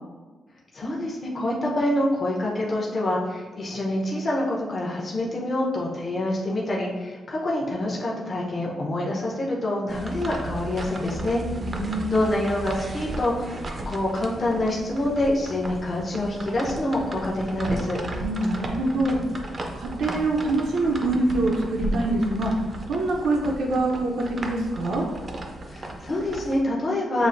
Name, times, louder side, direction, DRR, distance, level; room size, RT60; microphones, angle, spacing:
voice 1, 0.7-11.4 12.1-18.0 25.7-27.3, left 1 dB, 30° left, -4 dB, 0.7 m, -26 dB
sound 1, 9.9-26.6, right 1 dB, 25° right, 0.5 m, -34 dB
voice 2, 11.6-12.2 18.1-19.2 19.8-25.0, right 2 dB, 85° right, -2 dB, 0.6 m, -25 dB
6.9 x 2.5 x 2.5 m, 1.3 s
wide cardioid pair, 165°, 0 cm